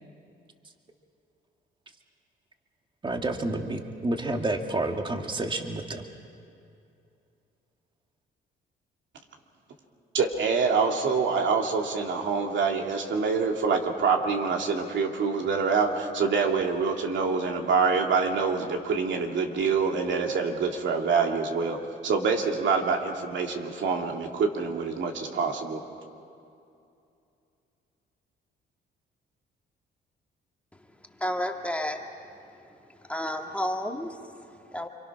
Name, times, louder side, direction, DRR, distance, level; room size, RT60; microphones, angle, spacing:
voice 1, 3.0-6.1, right 2 dB, 25° right, 4 dB, 1.9 m, -29 dB
voice 2, 10.1-25.8, right 5 dB, 70° right, 2 dB, 2.6 m, -26 dB
voice 3, 31.2-32.0 32.9-34.9, left 1 dB, 5° left, 2 dB, 1.9 m, -32 dB
29.0 x 24.0 x 6.1 m, 2.6 s
cardioid pair, 90°, 20 cm